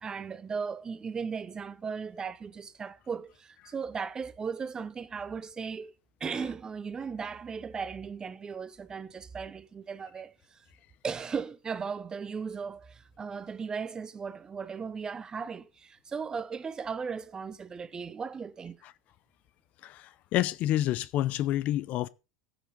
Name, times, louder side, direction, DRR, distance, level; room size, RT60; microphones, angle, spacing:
voice 1, 0.0-5.9 6.2-10.7 11.0-18.8, right 5 dB, 25° right, 0.9 m, -37 dB
voice 2, 19.8-22.1, left 13 dB, 50° left, 0.7 m, -28 dB
15.0 x 8.1 x 3.8 m
hypercardioid pair, 95°, 3 cm